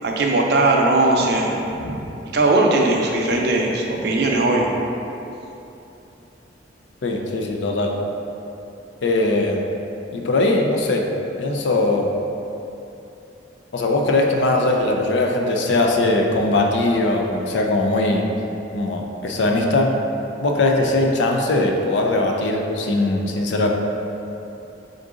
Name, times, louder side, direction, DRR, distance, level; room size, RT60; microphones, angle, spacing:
voice 1, 0.0-2.0 2.3-4.6, right 2 dB, 60° right, 0 dB, 0.5 m, -19 dB
voice 2, 7.0-7.9 9.0-9.7 10.1-11.1 11.4-12.1 13.7-18.3 18.7-20.0 20.4-23.7, left 2 dB, 70° left, 1 dB, 0.5 m, -20 dB
3.8 x 3.7 x 3.7 m, 2.9 s
head